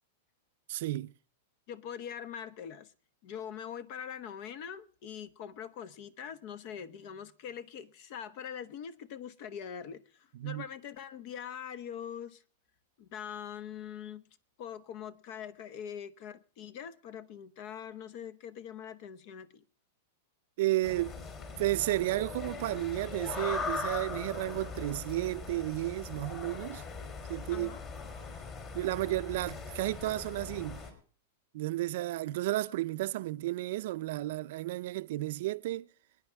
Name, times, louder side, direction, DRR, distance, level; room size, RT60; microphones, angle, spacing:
voice 1, 0.7-1.1 10.4-10.6 20.6-21.1 21.6-26.8 27.3-27.7 28.7-30.8 31.5-35.9, right 17 dB, 60° right, 0.6 m, -32 dB
voice 2, 1.7-2.9 3.2-12.4 13.0-14.2 14.6-19.6 27.5-27.8, left 8 dB, 45° left, 1.1 m, -43 dB
sound 1, 20.8-30.9, left 4 dB, 30° left, 3.2 m, -40 dB
26.0 x 10.0 x 3.5 m
supercardioid pair, 150°, 0 cm